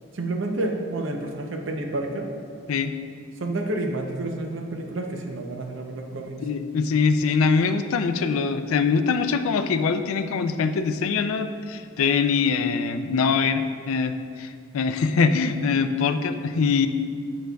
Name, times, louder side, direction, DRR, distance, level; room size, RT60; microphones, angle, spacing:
voice 1, 0.1-2.3 3.4-6.4, right 2 dB, 70° right, 2 dB, 0.7 m, -29 dB
voice 2, 6.4-16.9, left 5 dB, 90° left, 9 dB, 0.4 m, -23 dB
9.0 x 6.2 x 2.3 m, 2.2 s
head